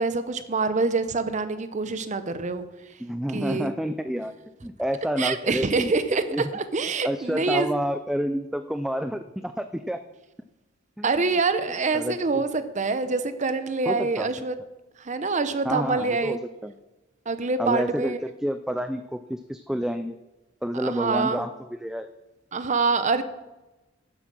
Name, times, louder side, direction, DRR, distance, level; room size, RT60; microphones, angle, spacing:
voice 1, 0.0-2.6 3.3-3.7 5.2-7.7 11.0-14.5 15.0-16.4 17.3-18.2 20.7-21.4 22.5-23.2, right 3 dB, 40° right, 11 dB, 0.7 m, -25 dB
voice 2, 3.0-4.3 4.6-5.9 6.3-6.4 7.0-10.0 11.0-11.2 11.9-12.4 13.9-14.3 15.6-16.7 17.6-20.2 20.6-22.1, equal, 5° right, 8 dB, 0.4 m, -29 dB
9.8 x 8.0 x 6.2 m, 1.1 s
head